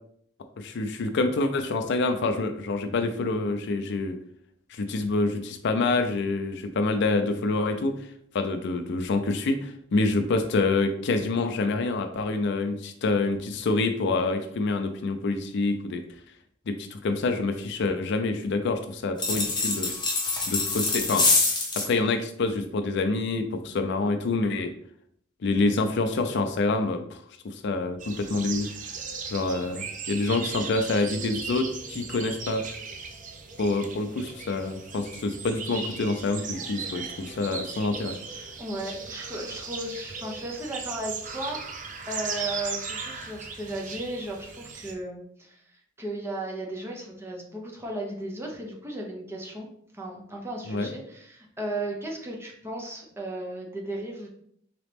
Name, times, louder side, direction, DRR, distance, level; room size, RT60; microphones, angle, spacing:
voice 1, 0.6-4.2 4.7-7.9 8.3-16.0 16.7-19.9 20.5-21.3 21.8-24.7 25.4-28.7 29.3-32.6 33.6-38.5 50.7-50.9, left 3 dB, 60° left, 7 dB, 0.4 m, -27 dB
sound 1, 19.2-21.9, left 3 dB, 25° left, 0.9 m, -25 dB
sound 2, 28.0-44.9, right 5 dB, 40° right, 0.5 m, -37 dB
voice 2, 38.6-41.8 42.1-49.7 49.9-54.3, right 1 dB, 15° right, -1 dB, 0.8 m, -35 dB
4.0 x 3.0 x 3.4 m, 0.66 s
head